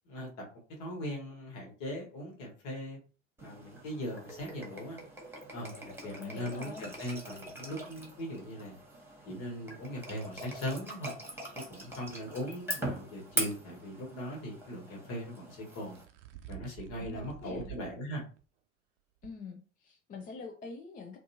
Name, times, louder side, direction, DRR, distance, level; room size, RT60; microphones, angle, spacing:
voice 1, 0.0-0.4 0.8-3.0 3.4-5.0 5.5-8.7 9.2-11.1 11.7-16.0 16.5-18.2, equal, 50° left, 0 dB, 1.5 m, -39 dB
sound 1, 3.4-16.0, right 2 dB, 5° right, 1.3 m, -42 dB
voice 2, 6.2-6.9 16.9-17.7 19.2-21.2, left 4 dB, 20° left, 4 dB, 0.5 m, -45 dB
sound 2, 13.3-13.6 15.5-17.9 18.4-18.5 19.2-19.3, right 13 dB, 70° right, 0.6 m, -48 dB
3.5 x 2.4 x 2.7 m, 0.37 s
figure-of-eight pair, 65°, 38 cm